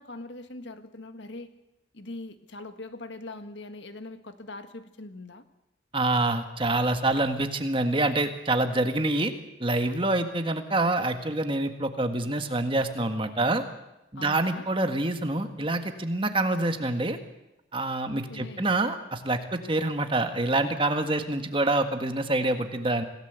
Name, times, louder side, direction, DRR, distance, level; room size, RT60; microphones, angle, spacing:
voice 1, 0.0-1.5 1.9-5.4 14.1-14.7 18.0-18.7, left 2 dB, 65° left, 9 dB, 1.7 m, -42 dB
voice 2, 5.9-9.3 9.6-13.6 14.1-17.2 17.7-23.0, right 2 dB, 25° right, 7 dB, 1.7 m, -26 dB
26.5 x 17.0 x 8.2 m, 0.94 s
head